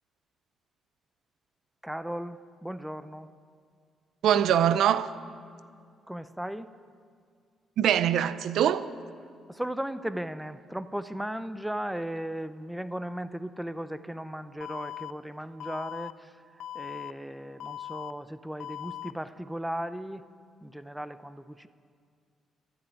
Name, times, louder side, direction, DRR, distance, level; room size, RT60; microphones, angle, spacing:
voice 1, 1.8-3.3 6.1-6.7 9.5-16.4 16.7-20.3 20.6-21.7, right 1 dB, 5° right, 0.6 m, -36 dB
voice 2, 4.2-5.2 7.8-8.9, right 9 dB, 75° right, 0.6 m, -23 dB
Alarm, 14.6-15.1 15.6-16.1 16.6-17.1 17.6-18.1 18.6-19.1, left 12 dB, 90° left, 0.4 m, -39 dB
12.5 x 11.0 x 9.0 m
cardioid pair, 90°, 0 cm